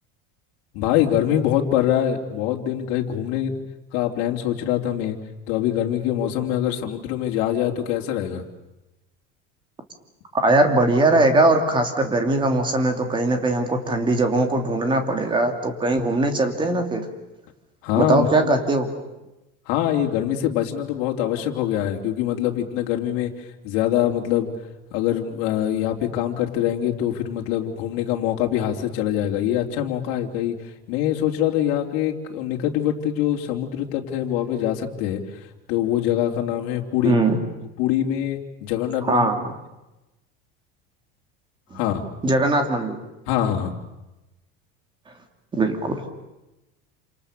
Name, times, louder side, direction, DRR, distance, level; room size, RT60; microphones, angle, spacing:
voice 1, 0.7-3.5 3.9-5.2 5.5-8.4 17.8-18.5 19.7-23.3 23.6-24.5 24.9-30.6 30.9-35.2 35.7-37.2 37.8-39.3 41.7-42.0 43.3-43.7, left 11 dB, 65° left, 1 dB, 3.4 m, -24 dB
voice 2, 10.4-17.1 18.0-18.9 37.0-37.4 39.1-39.4 42.2-43.0 45.5-46.0, right 2 dB, 15° right, 5 dB, 3.1 m, -20 dB
29.0 x 27.5 x 6.9 m, 1.0 s
cardioid pair, 160°, 29 cm